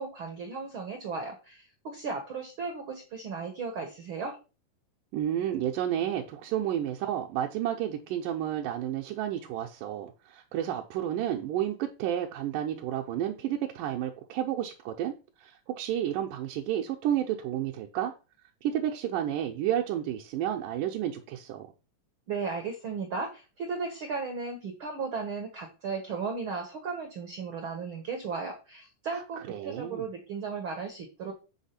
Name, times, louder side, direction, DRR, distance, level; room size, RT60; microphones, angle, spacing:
voice 1, 0.0-4.4 22.3-31.3, right 4 dB, 65° right, 1.3 m, -35 dB
voice 2, 5.1-15.1 15.4-18.1 18.6-21.7 29.1-29.2 29.5-30.0, right 11 dB, 80° right, 2.3 m, -31 dB
8.1 x 3.6 x 5.7 m
omnidirectional pair, 3.8 m